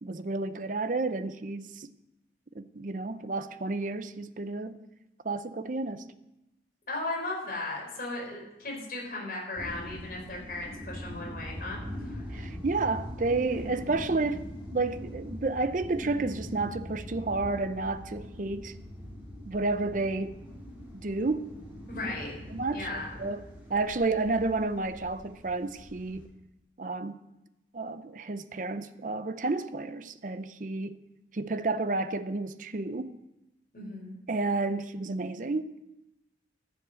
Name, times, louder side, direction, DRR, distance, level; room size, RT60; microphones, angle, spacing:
voice 1, 0.0-1.9 2.5-4.8 5.2-6.0 12.3-18.7 19.5-20.4 20.9-21.5 22.0-22.1 22.5-23.4 23.7-26.3 26.8-27.2 27.7-31.0 31.3-33.2 34.3-35.7, right 3 dB, 45° right, 0.6 m, -31 dB
voice 2, 6.9-12.5 21.9-22.4 22.7-23.3 33.7-34.1, left 2 dB, 50° left, 4.7 m, -37 dB
sound 1, 9.5-26.2, equal, 10° right, 3.4 m, -42 dB
13.5 x 7.3 x 6.3 m
head